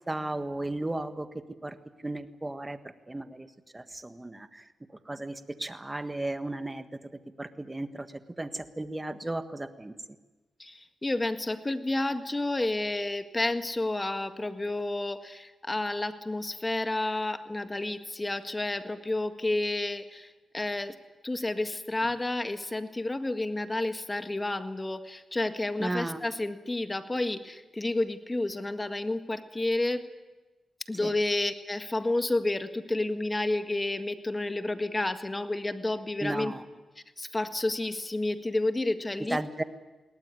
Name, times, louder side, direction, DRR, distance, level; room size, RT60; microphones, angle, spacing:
voice 1, 0.1-1.8 2.0-9.9 25.8-26.3 31.0-31.1 36.2-36.7 39.3-39.6, right 2 dB, 20° right, 10 dB, 1.6 m, -35 dB
voice 2, 10.6-21.0 21.2-30.1 30.9-36.5 37.2-39.4, left 2 dB, 20° left, 9 dB, 1.8 m, -30 dB
21.0 x 18.0 x 9.8 m, 1.2 s
cardioid pair, 65°, 0 cm